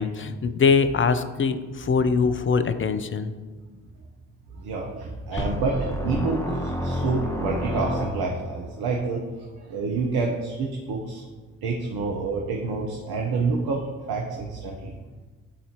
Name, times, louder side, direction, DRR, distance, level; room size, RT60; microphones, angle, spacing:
voice 1, 0.0-3.3 5.3-5.4, left 5 dB, 30° left, 11 dB, 0.6 m, -23 dB
voice 2, 4.5-9.2 9.6-11.2 11.6-13.8 14.1-15.0, right 4 dB, 55° right, -1 dB, 1.0 m, -28 dB
sound 1, 5.4-8.6, equal, 5° left, 1.1 m, -29 dB
11.5 x 4.2 x 3.0 m, 1.3 s
hypercardioid pair, 40°, 44 cm